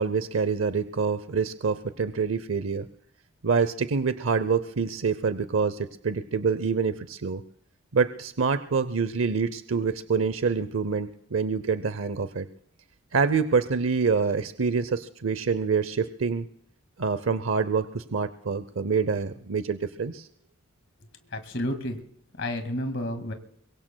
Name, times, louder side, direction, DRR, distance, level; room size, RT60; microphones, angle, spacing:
voice 1, 0.0-2.8 3.4-7.4 7.9-12.5 13.1-16.5 17.0-20.3, right 5 dB, 80° right, 12 dB, 0.7 m, -26 dB
voice 2, 21.3-22.0 22.4-23.3, left 1 dB, 60° left, 7 dB, 2.1 m, -30 dB
24.5 x 23.0 x 2.3 m, 0.72 s
head